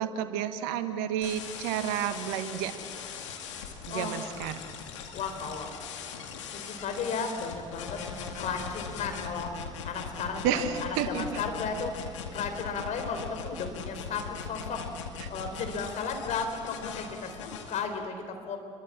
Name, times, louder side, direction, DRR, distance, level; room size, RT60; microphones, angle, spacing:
voice 1, 0.0-2.7 3.9-4.6 10.4-11.4 15.2-15.3, right 9 dB, 65° right, 10 dB, 1.5 m, -31 dB
sound 1, 1.2-17.8, left 6 dB, 75° left, 2.2 m, -40 dB
voice 2, 5.1-5.7 6.5-8.0 8.3-14.8 15.3-18.6, left 5 dB, 50° left, 5 dB, 4.0 m, -34 dB
26.0 x 22.5 x 7.5 m, 2.3 s
figure-of-eight pair, 55°, 15 cm